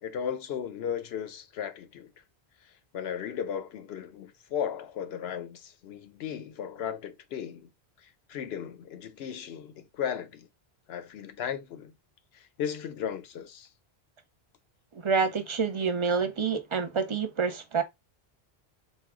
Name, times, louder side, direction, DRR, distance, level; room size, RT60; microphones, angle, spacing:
voice 1, 0.0-2.1 2.9-7.7 8.3-10.5 10.9-11.9 12.6-13.7, left 8 dB, 75° left, 0.9 m, -35 dB
voice 2, 15.0-17.8, right 5 dB, 35° right, 0.6 m, -27 dB
4.2 x 2.3 x 3.5 m
omnidirectional pair, 1.1 m